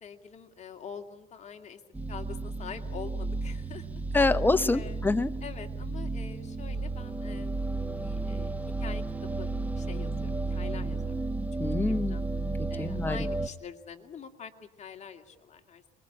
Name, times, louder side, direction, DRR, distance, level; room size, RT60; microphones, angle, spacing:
voice 1, 0.0-1.8 2.1-4.4 4.7-5.0 5.4-11.3 12.0-12.3 12.7-14.5 14.8-15.8, left 7 dB, 45° left, 5 dB, 2.4 m, -45 dB
sound 1, 1.9-13.5, right 3 dB, 10° right, 1.2 m, -33 dB
voice 2, 4.1-5.3 11.6-12.2 12.6-13.2, left 3 dB, 10° left, 12 dB, 0.9 m, -26 dB
25.5 x 22.0 x 10.0 m, 1.0 s
cardioid pair, 110°, 17 cm